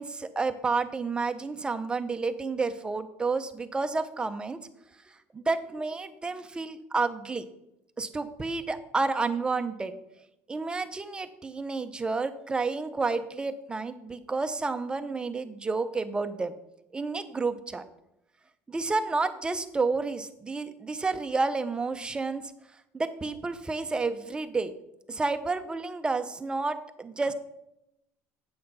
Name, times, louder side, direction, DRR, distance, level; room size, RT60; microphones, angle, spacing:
voice 1, 0.0-4.6 5.3-7.4 8.0-9.9 10.5-16.5 16.9-17.8 18.7-22.5 22.9-24.7 25.1-27.3, right 3 dB, 15° right, 9 dB, 0.8 m, -30 dB
8.4 x 7.7 x 5.5 m, 0.84 s
cardioid pair, 120°, 6 cm